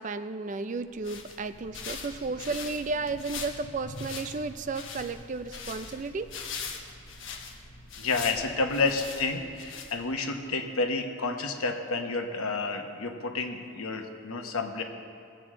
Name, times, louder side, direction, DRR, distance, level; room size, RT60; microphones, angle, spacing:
voice 1, 0.0-6.3, right 3 dB, 35° right, 11 dB, 0.3 m, -33 dB
sound 1, 0.8-10.3, left 5 dB, 60° left, 1.1 m, -42 dB
voice 2, 8.0-14.8, left 3 dB, 85° left, 5 dB, 1.0 m, -30 dB
19.5 x 7.8 x 3.7 m, 2.4 s
head